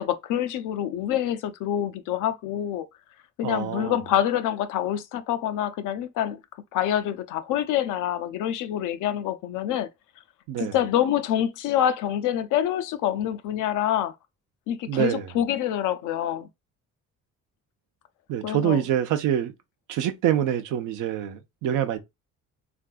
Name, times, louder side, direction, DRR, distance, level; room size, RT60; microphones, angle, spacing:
voice 1, 0.0-2.9 3.4-6.4 6.7-9.9 10.6-14.1 14.7-16.5 18.4-18.8, left 11 dB, 90° left, 0.5 m, -26 dB
voice 2, 3.4-4.0 10.5-10.7 14.9-15.3 18.3-19.5 19.9-22.0, right 10 dB, 90° right, 0.6 m, -25 dB
3.5 x 2.6 x 2.3 m
cardioid pair, 90°, 30 cm